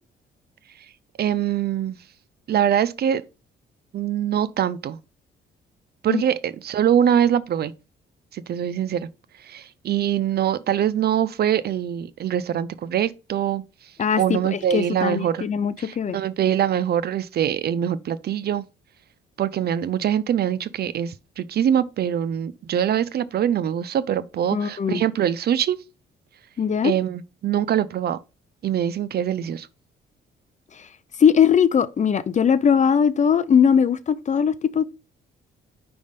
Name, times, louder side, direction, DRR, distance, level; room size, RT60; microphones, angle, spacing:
voice 1, 1.2-2.0 2.5-3.2 3.9-5.0 6.0-7.7 8.3-9.1 9.4-13.6 14.2-15.5 15.8-18.6 19.4-25.8 26.8-28.2 28.6-29.7, right 10 dB, 55° right, 0.5 m, -23 dB
voice 2, 14.0-16.2 24.5-25.0 26.6-26.9 31.2-34.8, left 7 dB, 35° left, 0.5 m, -20 dB
5.3 x 3.4 x 5.1 m
cardioid pair, 90°, 20 cm